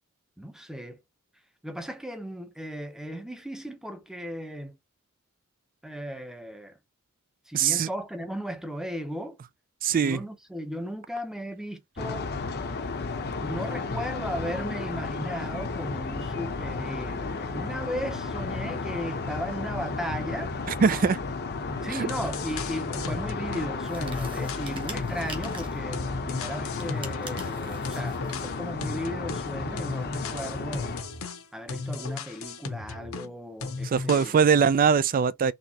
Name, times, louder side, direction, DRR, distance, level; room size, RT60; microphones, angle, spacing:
voice 1, 0.4-1.0 1.6-4.7 5.8-6.8 7.5-9.4 10.0-12.3 13.4-20.5 21.8-30.9 31.5-34.3, equal, 5° right, 0.7 m, -36 dB
voice 2, 7.5-7.9 9.8-10.2 20.8-21.2 21.9-22.1 33.9-35.5, right 6 dB, 40° right, 0.3 m, -22 dB
sound 1, 12.0-31.0, left 4 dB, 50° left, 0.7 m, -33 dB
sound 2, 22.1-23.7 24.0-27.6 27.8-33.3 33.6-34.4, left 4 dB, 70° left, 1.0 m, -36 dB
sound 3, 23.8-25.9 26.7-28.5, right 3 dB, 25° right, 1.2 m, -44 dB
4.3 x 3.2 x 2.8 m
head